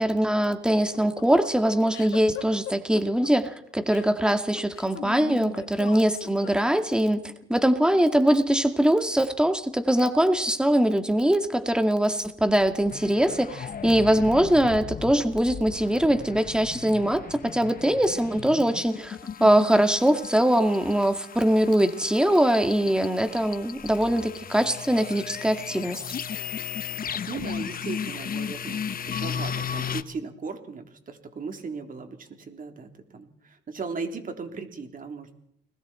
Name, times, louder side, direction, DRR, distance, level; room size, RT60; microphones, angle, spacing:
voice 1, 0.0-26.0, right 1 dB, 5° right, 7 dB, 2.1 m, -22 dB
sound 1, 0.7-7.0, left 11 dB, 85° left, 2.3 m, -39 dB
sound 2, 12.4-30.0, left 7 dB, 45° left, 1.1 m, -36 dB
voice 2, 27.3-35.4, right 4 dB, 45° right, 4 dB, 3.7 m, -37 dB
30.0 x 21.0 x 4.5 m, 0.75 s
cardioid pair, 90°, 20 cm